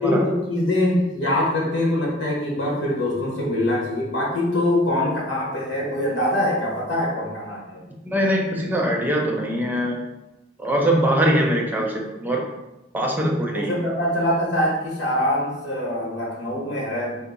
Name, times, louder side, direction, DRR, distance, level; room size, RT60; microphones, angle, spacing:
voice 1, 0.0-7.8 13.2-17.2, left 1 dB, 65° left, -4 dB, 1.1 m, -23 dB
voice 2, 8.0-9.9 10.6-11.9 12.2-12.4 12.9-13.7, right 1 dB, 10° right, -1 dB, 0.4 m, -22 dB
2.8 x 2.5 x 3.7 m, 0.97 s
head